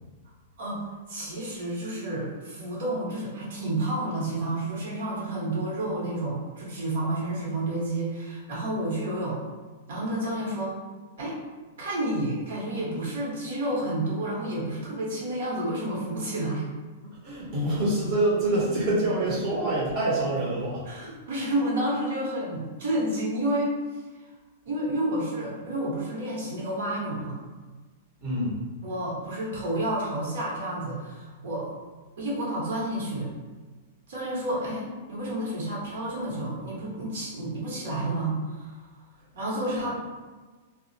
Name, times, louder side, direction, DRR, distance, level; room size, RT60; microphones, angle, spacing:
voice 1, 0.6-9.4 9.9-10.8 11.2-11.4 11.8-16.7 20.8-24.0 24.6-27.4 28.8-31.7 32.2-33.3 34.1-38.8 39.3-39.9, right 1 dB, 75° right, -5 dB, 1.0 m, -30 dB
voice 2, 17.2-20.8 28.2-28.5, right 1 dB, 35° right, -7 dB, 0.8 m, -26 dB
2.3 x 2.1 x 2.6 m, 1.3 s
supercardioid pair, 160°, 0 cm